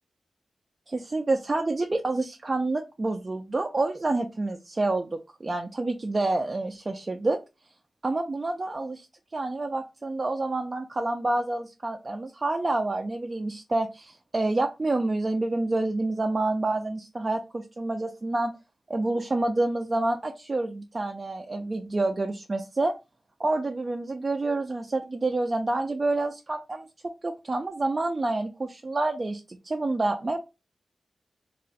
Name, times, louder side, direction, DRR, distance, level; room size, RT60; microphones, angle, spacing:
voice 1, 0.9-7.4 8.0-9.1 9.3-18.5 18.9-22.9 23.4-26.9 27.2-30.4, right 2 dB, 30° right, 3 dB, 0.3 m, -28 dB
2.4 x 2.1 x 3.9 m, 0.26 s
wide cardioid pair, 150°, 0 cm